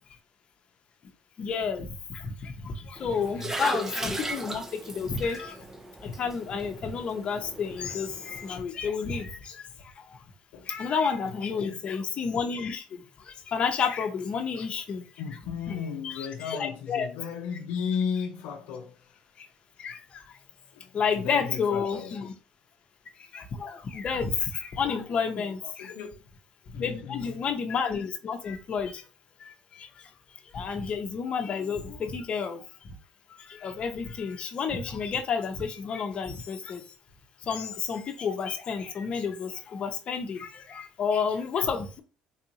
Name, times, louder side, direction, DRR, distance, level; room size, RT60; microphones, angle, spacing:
voice 1, 1.4-5.7 6.0-10.2 10.6-15.1 15.7-17.1 19.4-19.5 19.8-20.4 20.9-22.3 23.2-25.9 26.7-29.1 29.4-33.0 33.4-36.9 37.4-42.0, left 6 dB, 45° left, 0.7 m, -31 dB
sound 1, 3.0-8.6, right 2 dB, 15° right, 0.5 m, -37 dB
voice 2, 3.2-3.6 10.5-10.7 11.3-11.8 15.2-19.2 20.7-22.3 25.8-26.2 26.7-27.4, left 7 dB, 85° left, 0.5 m, -35 dB
3.9 x 2.5 x 2.9 m
cardioid pair, 105°, 3 cm